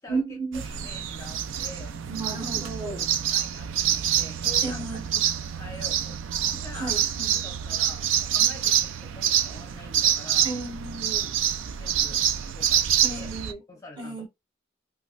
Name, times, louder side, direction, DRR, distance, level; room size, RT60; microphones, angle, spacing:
voice 1, 0.1-1.0 2.1-3.0 4.6-5.2 6.7-7.4 10.4-11.4 13.0-13.6 14.0-14.3, right 3 dB, 25° right, 1.1 m, -34 dB
sound 1, 0.5-13.5, right 10 dB, 85° right, 0.4 m, -26 dB
voice 2, 0.6-2.1 2.4-2.5 2.8-5.0 5.5-6.2 6.5-7.0 7.3-10.5 11.7-12.2 12.5-13.3 13.7-14.3, left 2 dB, 15° left, 0.6 m, -45 dB
3.0 x 2.4 x 2.4 m
head